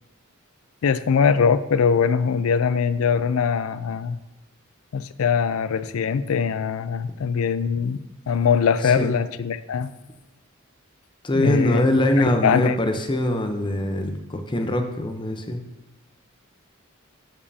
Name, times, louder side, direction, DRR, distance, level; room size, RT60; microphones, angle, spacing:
voice 1, 0.8-4.2 4.9-8.0 8.3-9.9 11.3-11.8 12.2-12.8, left 6 dB, 75° left, 14 dB, 0.4 m, -22 dB
voice 2, 11.2-15.6, left 1 dB, 25° left, 6 dB, 0.7 m, -23 dB
13.5 x 5.3 x 2.7 m, 1.0 s
head